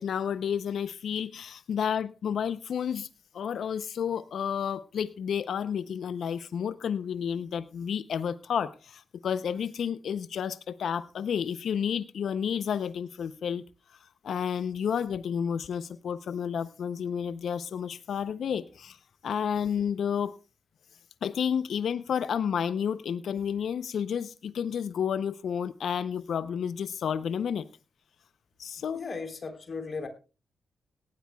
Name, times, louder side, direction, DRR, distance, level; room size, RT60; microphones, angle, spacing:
voice 1, 0.0-3.1 3.3-13.6 13.9-20.3 21.2-27.7 28.6-29.0, left 8 dB, 70° left, 0.6 m, -31 dB
voice 2, 28.9-30.1, left 4 dB, 55° left, 3.5 m, -36 dB
18.0 x 12.5 x 2.3 m
supercardioid pair, 45°, 0 cm